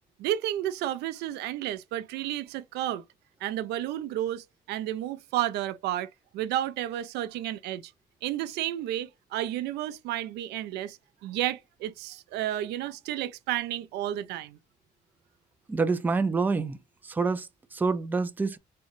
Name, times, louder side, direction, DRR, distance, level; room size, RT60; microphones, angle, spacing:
voice 1, 0.2-3.0 3.4-7.8 8.2-14.6, right 12 dB, 80° right, 0.4 m, -32 dB
voice 2, 15.7-16.8 17.0-18.6, right 4 dB, 10° right, 0.3 m, -27 dB
3.7 x 2.1 x 2.9 m
cardioid pair, 110°, 17 cm